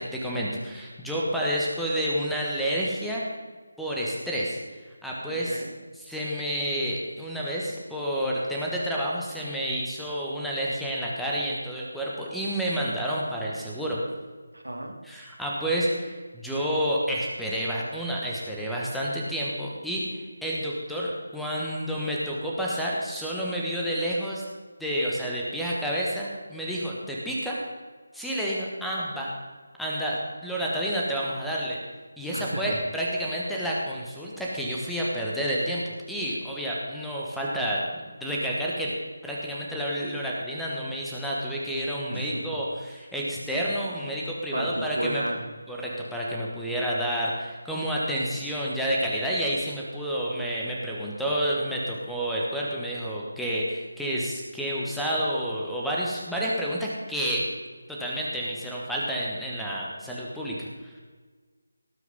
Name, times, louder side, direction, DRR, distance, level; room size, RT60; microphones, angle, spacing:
voice 1, 0.0-3.2 3.8-4.6 5.0-5.6 6.1-14.0 15.1-24.4 24.8-27.6 28.1-29.3 29.8-31.8 32.2-35.8 36.1-37.8 38.2-38.9 39.2-45.2 45.7-57.5 57.9-60.9, equal, ahead, -5 dB, 1.3 m, -29 dB
voice 2, 5.3-5.8 14.5-15.0 32.3-32.8 42.1-42.6 44.5-45.5, right 1 dB, 75° right, 4 dB, 2.0 m, -33 dB
18.0 x 6.4 x 5.4 m, 1.4 s
figure-of-eight pair, 160°, 0 cm